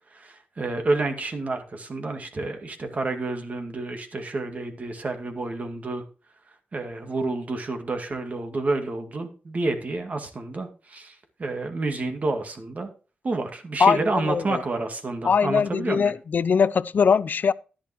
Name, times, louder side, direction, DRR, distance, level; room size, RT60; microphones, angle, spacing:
voice 1, 0.1-6.0 6.7-11.1 11.4-12.9 13.2-16.1, right 2 dB, 45° right, 2.2 m, -29 dB
voice 2, 13.8-14.6 15.2-17.5, left 6 dB, 60° left, 0.5 m, -21 dB
11.5 x 10.0 x 3.0 m
cardioid pair, 65°, 4 cm